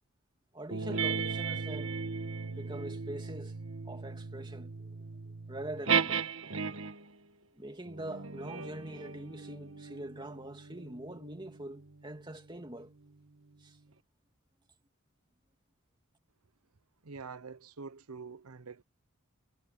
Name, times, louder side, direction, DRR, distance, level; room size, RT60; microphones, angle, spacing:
voice 1, 0.5-2.0 2.5-3.6 3.8-5.0 5.5-6.2 7.5-12.9 13.6-13.8, right 1 dB, 20° right, 2.4 m, -44 dB
sound 1, 0.7-7.1 7.9-12.8, right 6 dB, 65° right, 1.5 m, -36 dB
voice 2, 17.0-18.8, right 5 dB, 90° right, 0.9 m, -45 dB
head